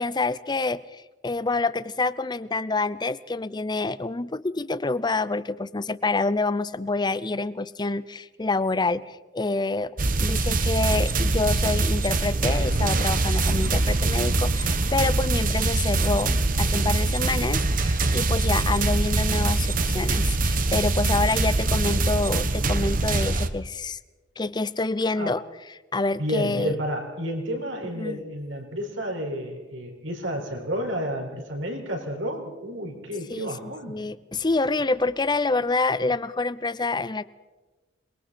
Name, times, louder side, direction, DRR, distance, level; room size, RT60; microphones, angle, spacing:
voice 1, 0.0-9.9 10.2-24.0 24.4-25.4 25.9-26.8 28.0-28.2 33.3-37.2, left 3 dB, 20° left, 16 dB, 0.6 m, -27 dB
sound 1, 10.0-23.5, right 2 dB, 45° right, 1.2 m, -23 dB
voice 2, 26.2-34.0, equal, 85° right, 1 dB, 5.2 m, -31 dB
27.5 x 22.0 x 4.3 m, 1.3 s
head